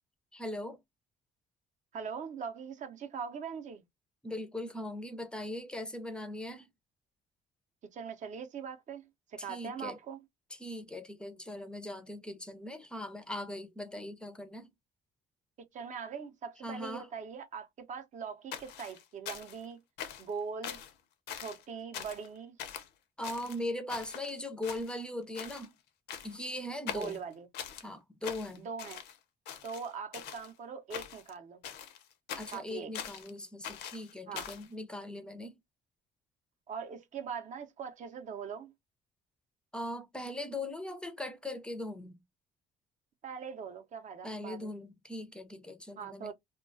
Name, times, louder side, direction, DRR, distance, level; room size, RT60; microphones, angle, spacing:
voice 1, 0.3-0.8 4.2-6.7 9.4-10.0 10.5-14.7 16.6-17.1 23.2-25.7 26.2-27.2 27.8-28.7 32.4-35.5 39.7-42.2 44.2-46.3, left 1 dB, 5° left, 0.5 m, -40 dB
voice 2, 1.9-3.8 7.9-10.2 15.7-19.8 20.2-20.8 21.4-22.6 26.9-27.5 28.6-29.0 29.6-31.6 32.5-32.9 34.3-34.5 36.7-38.7 43.2-44.8 46.0-46.3, right 6 dB, 45° right, 0.6 m, -41 dB
sound 1, 18.5-19.7 20.0-20.3 20.6-20.9 21.3-21.6 21.9-22.3 22.6-22.9 23.2-24.3 24.6-25.1 25.4-25.7 26.1-26.5 26.9-27.9 28.2-29.2 29.5-30.5 30.9-31.3 31.6-33.3 33.6-34.7, left 9 dB, 80° left, 0.6 m, -43 dB
2.3 x 2.2 x 2.5 m
cardioid pair, 110°, 17 cm